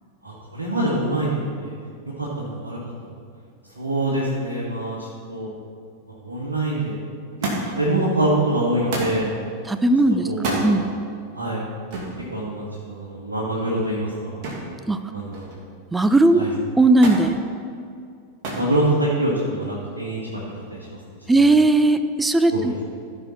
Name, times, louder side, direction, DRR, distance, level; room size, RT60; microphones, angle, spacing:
voice 1, 0.2-1.7 2.2-3.1 3.7-5.5 6.1-7.0 7.6-9.4 10.2-10.7 11.3-11.6 12.0-14.5 15.1-15.5 16.4-16.5 18.5-21.0 21.3-21.5 22.5-22.7, right 1 dB, 75° right, -6 dB, 1.6 m, -25 dB
Thump thud, 7.4-7.9 8.9-9.2 10.3-10.7 11.9-12.2 14.4-14.7 15.1-15.7 17.0-17.3 18.4-18.7 19.6-20.1 21.1-21.2, right 2 dB, 45° right, 2.1 m, -28 dB
voice 2, 9.6-10.9 14.9-15.0 15.9-16.4 16.8-17.4 21.3-22.7, right 2 dB, 10° right, 10 dB, 0.5 m, -17 dB
14.5 x 5.7 x 4.3 m, 2.3 s
figure-of-eight pair, 90°, 0 cm